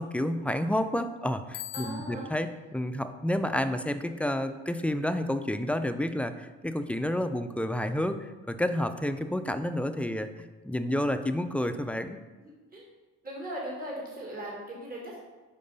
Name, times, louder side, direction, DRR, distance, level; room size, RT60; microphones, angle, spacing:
voice 1, 0.0-12.2, left 1 dB, 5° left, 8 dB, 0.3 m, -30 dB
Bicycle bell, 1.5-2.5, left 15 dB, 85° left, 0.5 m, -41 dB
voice 2, 1.7-2.3 12.4-12.8 13.2-15.2, right 1 dB, 30° right, -3 dB, 1.8 m, -39 dB
5.3 x 4.8 x 5.3 m, 1.2 s
cardioid pair, 90°, 30 cm